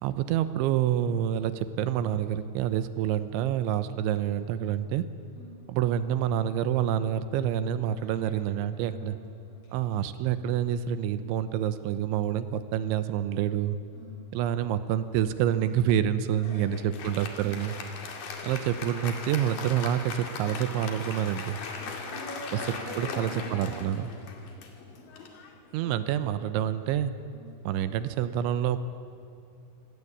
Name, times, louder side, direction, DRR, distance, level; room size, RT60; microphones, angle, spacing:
voice 1, 0.0-5.1 5.7-9.2 9.7-13.8 14.3-17.8 18.4-21.6 23.0-24.1 25.7-27.1 27.6-28.8, right 10 dB, 90° right, 12 dB, 3.3 m, -27 dB
voice 2, 5.3-5.6 7.9-9.8 13.9-14.2 16.3-16.9 17.3-18.6 21.7-23.9 24.5-24.6 25.8-26.3 27.3-27.5, right 1 dB, 35° left, -1 dB, 6.2 m, -46 dB
Applause, 16.4-26.2, left 4 dB, 55° left, 3.5 m, -39 dB
26.0 x 19.5 x 8.5 m, 2.6 s
omnidirectional pair, 5.4 m